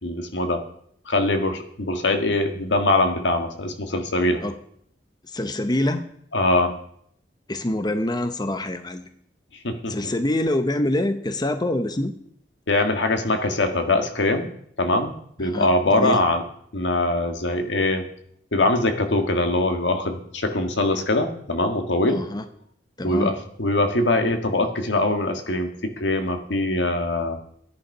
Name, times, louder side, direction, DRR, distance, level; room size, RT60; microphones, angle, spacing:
voice 1, 0.0-0.6 1.0-4.4 6.3-6.8 9.6-10.1 12.7-14.5 14.8-15.1 15.4-16.4 16.7-18.1 18.5-22.2 23.0-27.4, left 2 dB, 80° left, 6 dB, 1.8 m, -22 dB
voice 2, 5.2-6.0 7.5-9.1 9.9-12.1 15.4-16.2 22.1-22.4 23.0-23.3, left 1 dB, 25° left, 9 dB, 0.8 m, -25 dB
14.0 x 10.5 x 5.5 m, 0.67 s
head